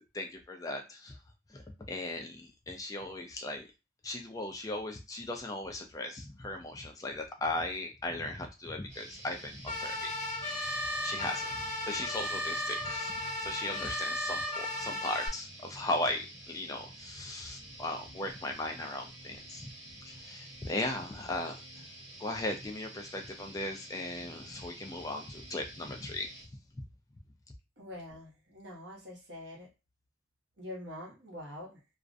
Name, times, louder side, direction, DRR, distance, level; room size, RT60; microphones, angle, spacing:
voice 1, 0.1-1.2 1.5-1.6 1.9-3.7 4.0-10.1 10.4-11.6 11.9-19.7 20.1-21.8 22.2-26.3, left 2 dB, 20° left, 4 dB, 0.3 m, -37 dB
sound 1, 8.9-26.4, right 1 dB, 35° right, 1.0 m, -49 dB
sound 2, 9.7-15.3, left 1 dB, 35° left, 1.0 m, -35 dB
voice 2, 27.8-29.7 30.6-31.8, left 1 dB, 65° right, -2 dB, 0.9 m, -45 dB
2.4 x 2.0 x 2.5 m, 0.27 s
head